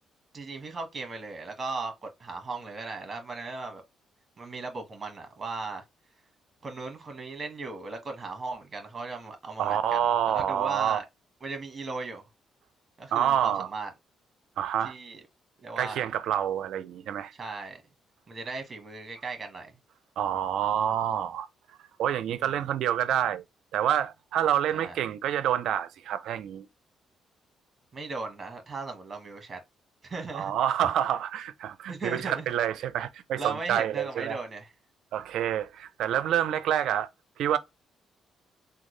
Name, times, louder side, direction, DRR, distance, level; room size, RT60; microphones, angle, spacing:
voice 1, 0.3-3.8 4.4-5.8 6.6-11.0 11.4-12.2 13.0-13.9 14.8-15.2 15.6-16.0 17.3-17.8 18.3-19.7 22.4-22.6 24.7-25.0 27.9-29.6 30.0-30.5 31.9-32.5 33.4-34.7, right 3 dB, 35° right, 1.5 m, -37 dB
voice 2, 9.6-11.0 13.1-13.7 14.6-14.9 15.8-17.3 20.2-21.5 22.0-23.4 23.7-26.7 30.3-34.4 35.1-37.1 37.4-37.6, right 10 dB, 80° right, 0.5 m, -27 dB
3.7 x 2.3 x 3.1 m
cardioid pair, 90°, 0 cm